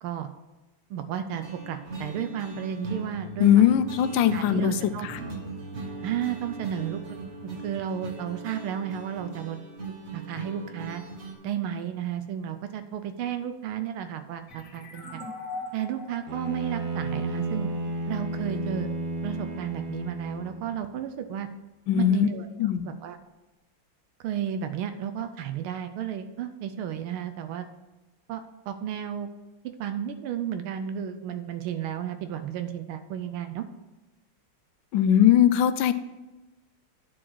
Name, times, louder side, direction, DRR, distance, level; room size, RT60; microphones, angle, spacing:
voice 1, 0.0-0.3 0.9-3.7 4.3-5.1 6.0-7.2 7.4-9.6 10.1-11.0 11.4-15.2 15.7-17.7 18.1-18.9 19.2-21.5 22.0-22.5 22.8-23.2 24.2-27.7 28.3-29.3 29.6-33.6, right 9 dB, 85° right, 9 dB, 1.5 m, -33 dB
sound 1, 1.3-11.3, right 3 dB, 35° right, 1.6 m, -39 dB
voice 2, 3.4-4.7 5.1-5.2 21.9-22.3 22.6-22.9 34.9-35.9, left 10 dB, 75° left, 12 dB, 1.2 m, -20 dB
sound 2, 14.5-17.9, left 2 dB, 40° left, 2.2 m, -41 dB
Bowed string instrument, 16.3-20.7, right 2 dB, 65° right, 0.5 m, -32 dB
10.0 x 4.7 x 6.2 m, 1.1 s
omnidirectional pair, 2.3 m